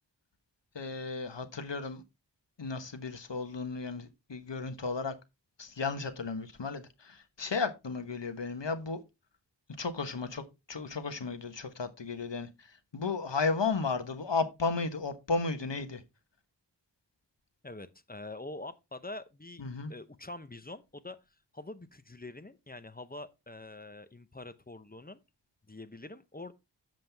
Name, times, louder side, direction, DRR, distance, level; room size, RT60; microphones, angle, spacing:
voice 1, 0.7-2.0 2.6-5.1 5.6-9.0 9.8-16.0 19.6-19.9, left 4 dB, 75° left, 1.2 m, -34 dB
voice 2, 17.6-19.6 19.9-21.2 21.5-25.2 25.7-26.5, left 2 dB, 20° left, 0.8 m, -45 dB
7.6 x 7.5 x 3.4 m
wide cardioid pair, 40°, 43 cm